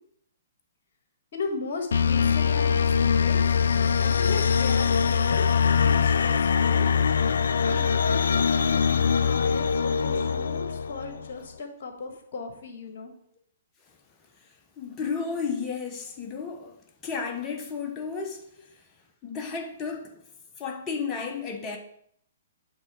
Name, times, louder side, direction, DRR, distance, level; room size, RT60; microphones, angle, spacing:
voice 1, 1.3-3.6 4.0-5.4 5.8-6.9 7.7-13.1, left 4 dB, 55° left, 1.7 m, -37 dB
sound 1, 1.9-11.3, left 6 dB, 70° left, 0.3 m, -23 dB
voice 2, 14.8-16.8 17.0-18.4 19.2-20.1 20.6-21.8, left 5 dB, 20° left, 1.1 m, -32 dB
8.4 x 3.7 x 4.7 m
figure-of-eight pair, 125°, 0 cm